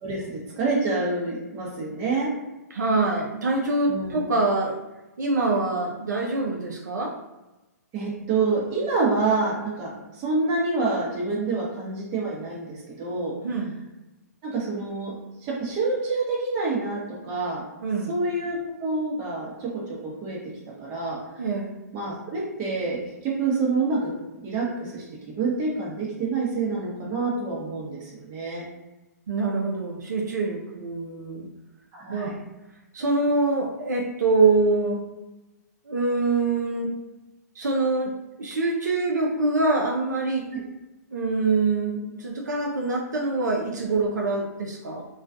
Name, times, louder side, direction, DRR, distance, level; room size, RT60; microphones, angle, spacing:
voice 1, 0.0-2.3 3.9-4.2 7.9-13.3 14.4-15.1 15.4-17.6 18.1-20.4 20.8-21.2 21.9-23.0 23.2-25.0 25.3-28.7 31.9-32.4, right 3 dB, 30° right, -4 dB, 0.8 m, -27 dB
voice 2, 2.7-4.8 5.2-7.1 13.4-13.8 17.8-18.1 21.4-21.8 29.3-31.5 32.1-32.4 32.9-35.0 35.9-36.9 37.6-38.1 38.4-40.4 41.1-45.0, right 3 dB, 80° right, 0 dB, 0.4 m, -24 dB
2.3 x 2.2 x 2.5 m, 1.0 s
hypercardioid pair, 130°, 9 cm